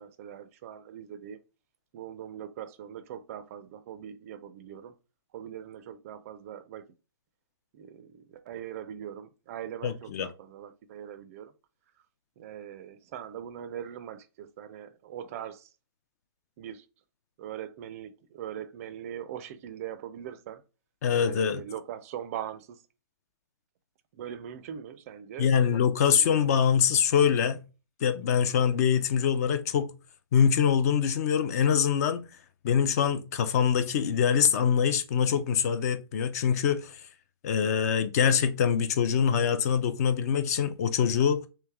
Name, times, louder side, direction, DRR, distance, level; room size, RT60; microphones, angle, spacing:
voice 1, 0.0-1.4 1.9-4.9 5.3-6.9 7.7-11.5 12.4-15.7 16.6-16.9 17.4-20.6 21.1-22.8 24.1-25.8 26.1-26.5, right 9 dB, 35° right, 0.4 m, -41 dB
voice 2, 9.8-10.3 21.0-21.6 25.4-27.6 28.0-29.9 30.3-32.2 32.6-37.0 37.4-41.5, left 7 dB, 40° left, 0.4 m, -24 dB
3.2 x 3.1 x 3.4 m
hypercardioid pair, 140°, 13 cm